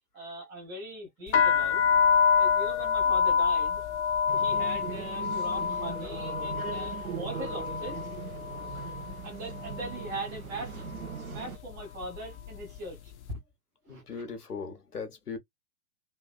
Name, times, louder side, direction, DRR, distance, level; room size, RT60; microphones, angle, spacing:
voice 1, 0.1-1.8 2.4-3.8 4.3-8.0 9.2-10.9 11.2-13.1 13.9-14.2, right 1 dB, 5° right, 0.4 m, -40 dB
sound 1, 1.3-9.2 9.5-10.1 10.8-11.1 11.3-12.8, left 6 dB, 50° left, 0.6 m, -27 dB
sound 2, 4.3-11.6, right 8 dB, 65° right, 0.7 m, -40 dB
voice 2, 13.9-15.4, left 5 dB, 80° left, 1.1 m, -39 dB
3.3 x 2.5 x 2.3 m
figure-of-eight pair, 110°, 45 cm